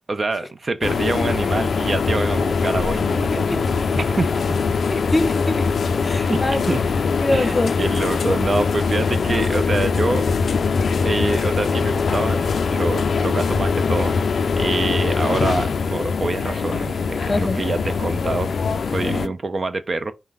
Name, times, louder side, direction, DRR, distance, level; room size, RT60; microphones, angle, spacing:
voice 1, 0.1-3.6 3.9-4.5 6.1-6.4 6.7-6.8 7.3-10.3 11.0-14.2 14.6-18.5 18.8-20.1, right 3 dB, 55° right, 0.5 m, -26 dB
sound 1, 0.8-19.3, left 5 dB, 85° left, 0.3 m, -22 dB
voice 2, 3.3-4.1 4.9-5.7 6.0-6.7 7.2-7.8 17.3-17.7 19.0-19.3, left 1 dB, 25° left, 0.7 m, -25 dB
5.5 x 2.1 x 3.5 m
cardioid pair, 55°, 0 cm